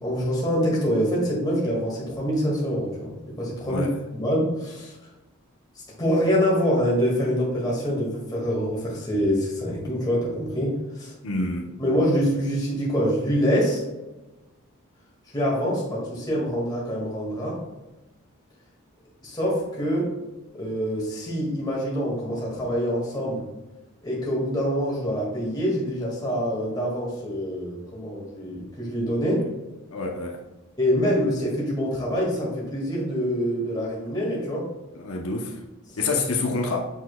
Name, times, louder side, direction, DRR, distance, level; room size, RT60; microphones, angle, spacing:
voice 1, 0.0-3.9 4.1-5.0 6.0-11.4 11.8-13.8 15.3-17.6 19.2-20.2 20.5-23.5 24.0-29.5 30.8-34.7, equal, 20° left, -4 dB, 1.9 m, -25 dB
voice 2, 11.2-11.7 29.9-30.4 34.9-35.6 36.0-36.9, left 3 dB, 75° left, 1 dB, 0.8 m, -27 dB
7.2 x 6.0 x 2.3 m, 1.1 s
head